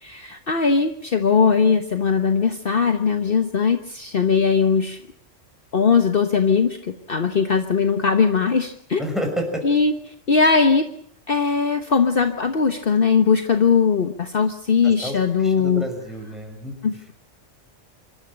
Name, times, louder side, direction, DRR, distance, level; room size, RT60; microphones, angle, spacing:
voice 1, 0.0-5.0 5.7-9.0 9.6-10.9 11.3-15.9 16.8-17.1, left 5 dB, 50° left, 7 dB, 1.3 m, -20 dB
voice 2, 9.0-9.6 14.8-15.2 15.4-16.7, equal, ahead, 3 dB, 6.1 m, -29 dB
26.0 x 13.0 x 9.8 m, 0.65 s
omnidirectional pair, 1.3 m